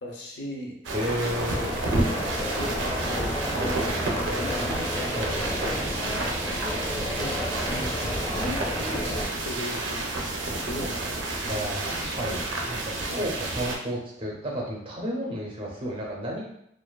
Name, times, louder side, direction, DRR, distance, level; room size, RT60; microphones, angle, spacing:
voice 1, 0.0-0.8 2.6-4.9 7.2-7.4 7.7-9.1 9.4-10.1 10.6-11.4 13.1-13.3, left 1 dB, 75° left, -1 dB, 0.6 m, -37 dB
sound 1, 0.8-13.7, right 2 dB, 90° right, 0.5 m, -30 dB
voice 2, 0.9-1.8 5.1-5.8 11.5-16.4, equal, 30° right, -2 dB, 0.5 m, -32 dB
sound 2, 1.5-9.2, left 1 dB, 20° left, 0.5 m, -31 dB
2.4 x 2.2 x 2.2 m, 0.75 s
head